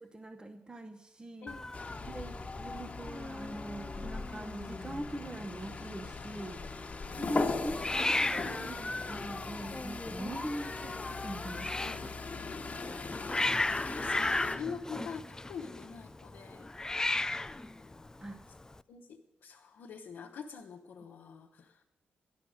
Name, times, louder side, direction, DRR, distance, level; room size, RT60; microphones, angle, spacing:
voice 1, 0.0-1.6 2.0-12.0 12.7-13.2 17.3-17.4 18.2-18.4, right 1 dB, 20° right, 6 dB, 0.9 m, -42 dB
voice 2, 1.4-2.4 7.0-7.5 11.8-12.0 13.3-17.2 17.8-18.0 18.9-21.8, left 6 dB, 80° left, -3 dB, 0.9 m, -46 dB
Hiss, 1.5-18.8, left 2 dB, 15° left, 0.4 m, -37 dB
sound 1, 1.7-14.6, left 4 dB, 40° left, 1.2 m, -40 dB
12.0 x 11.0 x 6.4 m, 1.0 s
cardioid pair, 65°, 4 cm